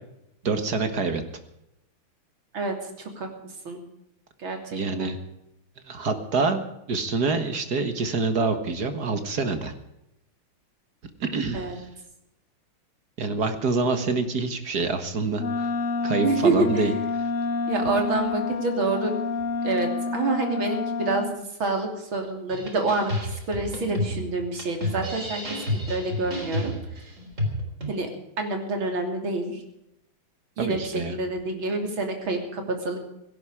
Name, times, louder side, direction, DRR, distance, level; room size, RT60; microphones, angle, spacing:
voice 1, 0.4-1.2 4.7-5.2 5.9-6.6 6.9-9.7 11.2-11.9 13.2-15.7 16.0-16.9 30.6-31.2, right 4 dB, 50° right, 8 dB, 2.1 m, -26 dB
voice 2, 2.5-3.3 3.7-3.8 4.4-5.1 11.5-11.8 16.2-16.9 17.7-19.1 19.6-23.1 23.5-26.7 27.9-28.1 28.4-29.6 30.6-33.0, right 3 dB, 70° right, 4 dB, 3.8 m, -27 dB
Wind instrument woodwind instrument, 15.4-21.4, left 4 dB, 55° left, 0.9 m, -28 dB
sound 1, 22.5-27.9, left 1 dB, 35° right, 4.3 m, -30 dB
17.0 x 17.0 x 5.0 m, 0.85 s
omnidirectional pair, 2.3 m